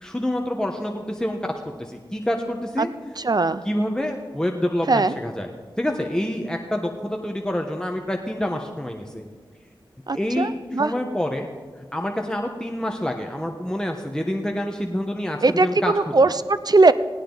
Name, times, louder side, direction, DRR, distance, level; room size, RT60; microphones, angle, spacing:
voice 1, 0.0-1.4 1.8-2.9 3.6-5.5 5.8-9.3 10.1-11.5 11.9-16.3, left 1 dB, 10° left, 2 dB, 1.3 m, -27 dB
voice 2, 3.2-3.6 4.9-5.1 10.1-10.9 15.4-16.9, right 3 dB, 50° right, 13 dB, 0.7 m, -19 dB
17.5 x 17.5 x 4.1 m, 1.5 s
wide cardioid pair, 55°, 9 cm